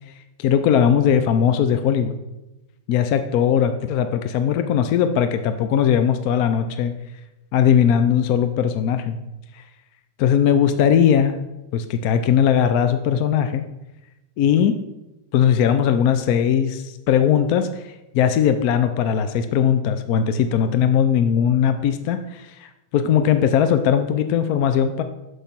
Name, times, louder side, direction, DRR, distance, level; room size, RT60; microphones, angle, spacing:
voice 1, 0.4-2.1 2.9-6.9 7.5-9.2 9.5-9.6 10.2-11.4 11.7-13.7 14.4-14.8 15.3-25.0, left 8 dB, 70° left, 9 dB, 0.9 m, -19 dB
8.2 x 6.5 x 5.9 m, 1.0 s
omnidirectional pair, 2.0 m